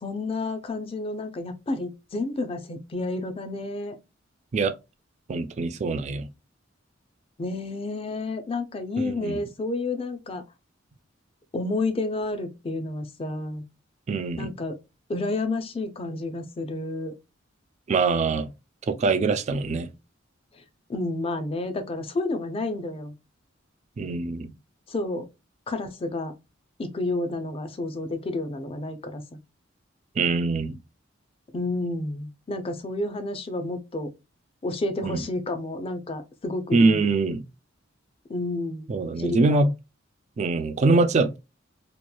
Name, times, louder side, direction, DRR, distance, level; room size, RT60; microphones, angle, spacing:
voice 1, 0.0-4.0 7.4-10.4 11.5-13.6 14.4-14.8 15.1-17.1 20.9-23.1 24.9-25.3 25.7-26.3 26.8-29.4 31.5-34.1 34.6-37.1 38.3-38.9 39.2-39.6, left 2 dB, 30° left, 0.4 m, -30 dB
voice 2, 5.3-6.3 9.0-9.4 14.1-14.5 17.9-18.5 18.9-19.9 24.0-24.5 30.2-30.8 35.0-35.2 36.7-37.4 38.9-39.7 40.4-41.4, right 3 dB, 35° right, 0.3 m, -23 dB
2.9 x 2.3 x 2.2 m
head